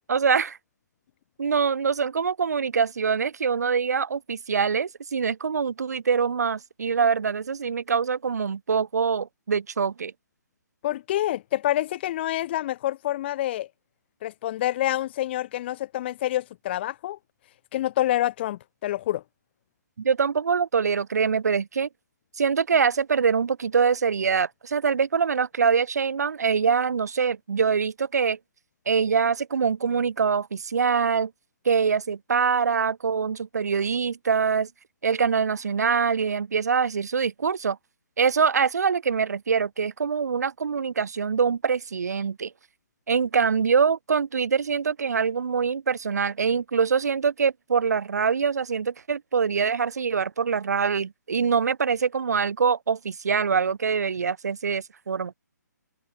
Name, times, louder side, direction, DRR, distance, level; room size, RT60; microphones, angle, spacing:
voice 1, 0.1-0.6 1.4-10.1 20.0-21.9 22.4-28.4 28.9-31.3 31.6-34.7 35.0-37.8 38.2-42.5 43.1-55.3, right 6 dB, 60° right, 4.8 m, -24 dB
voice 2, 10.8-13.7 14.2-17.2 17.7-19.2, left 14 dB, 35° left, 2.0 m, -27 dB
figure-of-eight pair, 140°, 10 cm